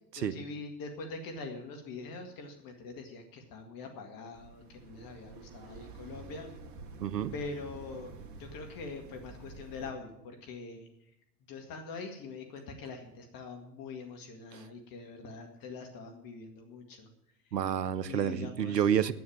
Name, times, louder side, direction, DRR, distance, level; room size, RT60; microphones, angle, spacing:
voice 1, 0.1-6.5 7.3-8.1 8.4-10.9 11.5-17.1 17.5-17.6 18.0-19.0, left 4 dB, 45° left, 4 dB, 2.1 m, -43 dB
sound 1, 4.3-9.9, right 3 dB, 45° right, 2.0 m, -49 dB
voice 2, 7.0-7.3 14.5-14.7 17.5-19.1, right 9 dB, 85° right, 17 dB, 0.7 m, -29 dB
9.6 x 9.3 x 8.6 m, 0.81 s
figure-of-eight pair, 80°, 48 cm